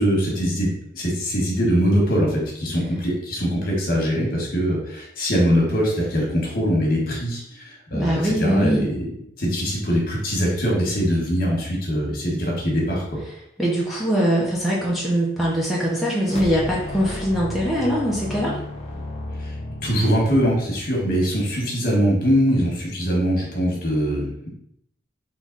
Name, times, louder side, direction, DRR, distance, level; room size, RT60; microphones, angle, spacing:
voice 1, 0.0-9.1 9.4-13.2 19.4-19.5 19.8-24.5, equal, 50° left, -2 dB, 1.3 m, -22 dB
voice 2, 7.9-8.9 13.6-18.6, equal, ahead, -6 dB, 0.7 m, -22 dB
sound 1, 16.2-21.6, left 1 dB, 35° left, 0.7 m, -33 dB
3.8 x 3.1 x 3.9 m, 0.73 s
head